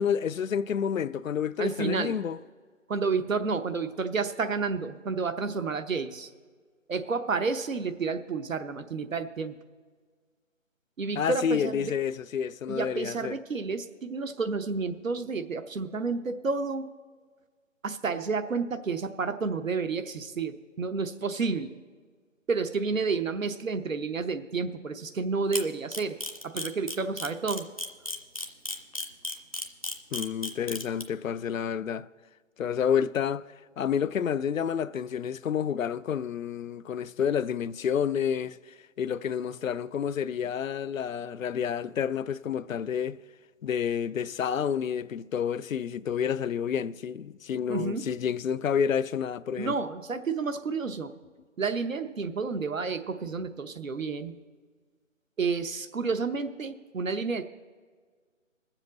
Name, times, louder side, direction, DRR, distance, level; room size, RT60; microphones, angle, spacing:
voice 1, 0.0-2.4 11.2-13.4 30.1-32.1 32.6-33.5 33.8-43.2 43.6-49.8, left 8 dB, 85° left, 0.5 m, -29 dB
voice 2, 1.6-2.1 2.9-6.3 6.9-9.5 11.0-11.9 12.7-16.9 17.8-21.8 22.5-26.2 26.4-27.7 47.7-48.0 49.6-51.1 51.6-54.3 55.4-57.4, right 4 dB, 90° right, 0.9 m, -30 dB
Camera, 25.5-31.0, left 1 dB, 30° left, 0.4 m, -33 dB
20.0 x 7.3 x 4.0 m
figure-of-eight pair, 160°, 39 cm